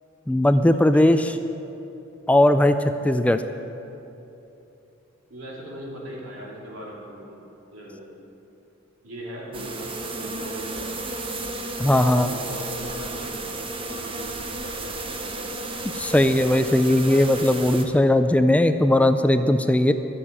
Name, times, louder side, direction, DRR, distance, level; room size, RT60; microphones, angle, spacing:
voice 1, 0.3-1.3 2.3-2.8 3.0-3.4 11.8-12.3 15.9-19.9, left 1 dB, 5° left, 9 dB, 0.3 m, -18 dB
voice 2, 5.3-7.4 7.7-8.1 9.0-10.9 11.9-15.8, equal, 90° right, -3 dB, 3.0 m, -39 dB
sound 1, 9.5-17.8, right 2 dB, 25° right, 0.9 m, -33 dB
11.5 x 7.2 x 9.5 m, 2.9 s
head